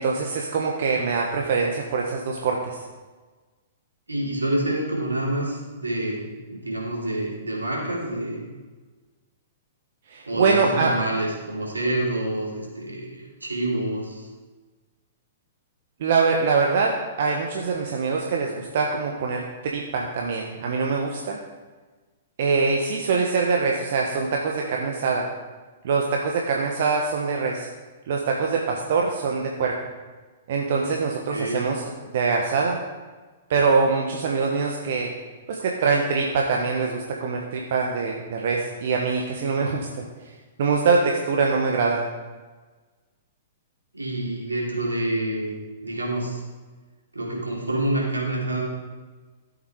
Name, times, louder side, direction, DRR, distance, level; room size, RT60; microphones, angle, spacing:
voice 1, 0.0-2.8 10.1-10.9 16.0-21.4 22.4-25.2 25.8-27.7 28.1-29.7 30.5-32.8 33.5-35.1 35.5-40.3 40.6-42.1, right 4 dB, 55° right, 0 dB, 1.4 m, -24 dB
voice 2, 4.1-8.5 10.3-14.3 31.3-31.6 43.9-45.6 45.8-46.4 47.1-48.6, right 1 dB, 85° right, -4 dB, 4.1 m, -27 dB
14.0 x 8.2 x 4.8 m, 1.3 s
figure-of-eight pair, 110°, 0 cm